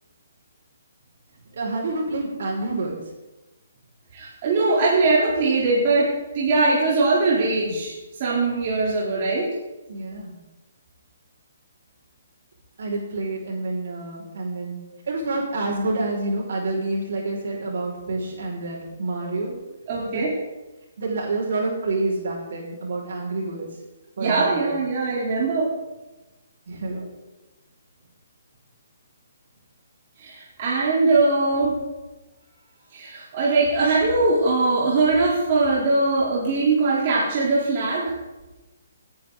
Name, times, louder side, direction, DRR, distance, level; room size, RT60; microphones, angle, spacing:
voice 1, 1.5-2.9 9.9-10.3 12.8-14.8 15.1-19.5 20.0-20.2 21.0-23.7 24.2-24.7 26.7-27.1, right 2 dB, 65° right, -3 dB, 5.5 m, -28 dB
voice 2, 4.1-7.9 8.2-9.5 18.7-18.8 19.9-20.3 24.2-25.7 26.9-27.0 30.2-31.8 32.9-38.1, right 3 dB, 40° right, -6 dB, 3.6 m, -21 dB
19.0 x 10.5 x 4.0 m, 1.1 s
hypercardioid pair, 150°, 0 cm